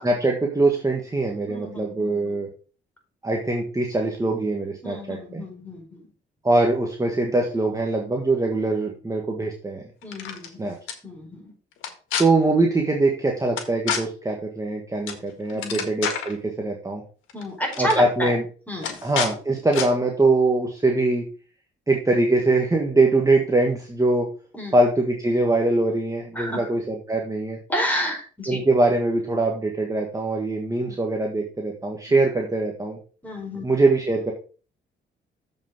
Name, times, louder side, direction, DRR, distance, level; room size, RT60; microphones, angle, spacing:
voice 1, 0.0-2.5 3.2-5.4 6.4-9.8 10.6-10.7 12.2-17.0 17.8-18.4 19.0-21.2 21.9-24.3 24.7-27.6 28.5-33.0 33.6-34.3, right 2 dB, 15° right, 1 dB, 1.6 m, -22 dB
voice 2, 1.5-2.4 4.8-6.0 10.0-10.7 11.0-11.5 15.5-15.9 17.3-18.4 18.7-19.0 24.5-24.8 26.3-26.7 27.7-28.6 30.9-31.0 33.2-33.6, equal, 10° left, 1 dB, 4.6 m, -30 dB
sound 1, 10.0-10.5 10.9-11.0 11.8-12.2 13.6-14.0 15.1-15.2 15.5-16.3 17.3-17.4 17.7-18.0 18.8-19.3 19.7-19.9, left 8 dB, 85° left, 1.7 m, -28 dB
7.3 x 5.7 x 5.3 m, 0.37 s
cardioid pair, 90°, 20 cm